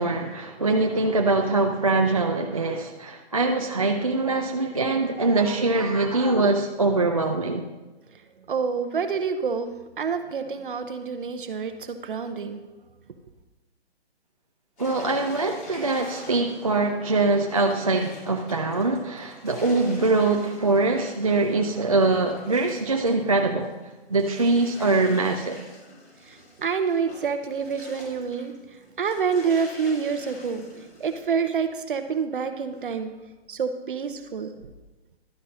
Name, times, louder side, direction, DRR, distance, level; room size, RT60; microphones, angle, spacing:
voice 1, 0.0-7.6 14.8-23.7 24.1-25.6, right 3 dB, 35° right, 2 dB, 0.4 m, -23 dB
voice 2, 8.5-12.6 26.3-28.5 29.0-30.6 31.0-33.1 33.5-34.5, right 6 dB, 50° right, 8 dB, 0.9 m, -27 dB
sound 1, 14.8-23.8 24.1-31.3, left 1 dB, 80° left, 3.6 m, -47 dB
12.0 x 6.2 x 4.1 m, 1.1 s
hypercardioid pair, 175°, 33 cm